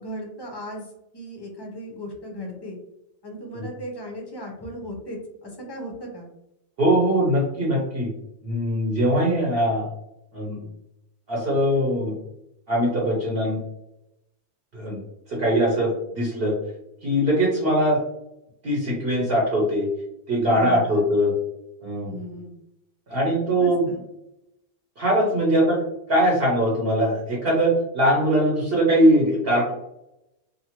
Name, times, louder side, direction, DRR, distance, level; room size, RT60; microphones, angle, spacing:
voice 1, 0.0-2.8 3.2-6.3 20.6-21.1 22.0-22.6 23.6-24.0 25.5-25.6, equal, 30° left, 1 dB, 0.4 m, -37 dB
voice 2, 6.8-8.1 8.4-9.9 10.3-10.6 11.3-12.1 12.7-13.6 14.7-15.0 15.3-16.5 17.0-18.0 18.6-19.9 20.3-21.3 21.8-22.1 23.1-23.9 25.0-25.8 26.1-29.7, equal, 55° right, -5 dB, 1.0 m, -21 dB
2.7 x 2.4 x 2.9 m, 0.84 s
omnidirectional pair, 1.3 m